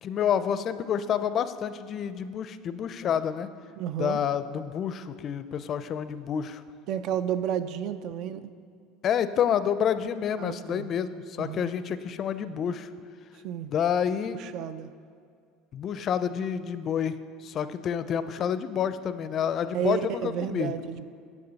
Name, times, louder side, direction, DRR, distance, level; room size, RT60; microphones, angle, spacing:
voice 1, 0.0-3.5 4.0-6.6 9.0-12.9 13.7-14.4 15.7-17.2 17.4-20.7, left 8 dB, 45° left, 13 dB, 0.4 m, -28 dB
voice 2, 3.8-4.2 6.9-8.4 10.4-10.9 11.4-11.7 13.4-13.7 14.3-14.9 19.7-21.0, right 9 dB, 60° right, 13 dB, 0.4 m, -31 dB
9.6 x 7.1 x 4.0 m, 2.2 s
supercardioid pair, 90°, 0 cm